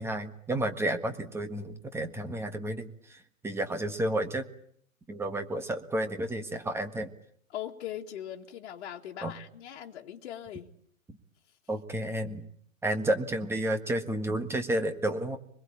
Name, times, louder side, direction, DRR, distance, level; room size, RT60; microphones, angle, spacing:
voice 1, 0.0-4.5 5.1-7.1 9.2-9.3 11.7-12.5 12.8-15.4, right 1 dB, 5° right, 8 dB, 1.6 m, -31 dB
voice 2, 7.5-10.7, left 11 dB, 50° left, -1 dB, 2.1 m, -40 dB
25.5 x 21.5 x 8.7 m, 0.65 s
hypercardioid pair, 130°, 41 cm